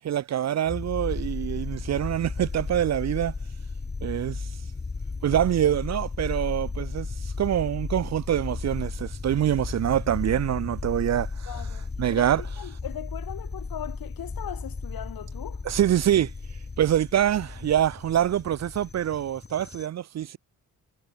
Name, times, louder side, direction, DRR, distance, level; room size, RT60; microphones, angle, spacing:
voice 1, 0.0-3.3 4.0-4.4 5.2-11.5 12.0-12.4 15.6-16.3 16.8-20.4, right 11 dB, 50° right, 0.5 m, -25 dB
sound 1, 0.6-19.9, left 4 dB, 30° left, 4.7 m, -35 dB
voice 2, 11.5-15.6, left 10 dB, 80° left, 5.7 m, -39 dB
cardioid pair, 95°, 35 cm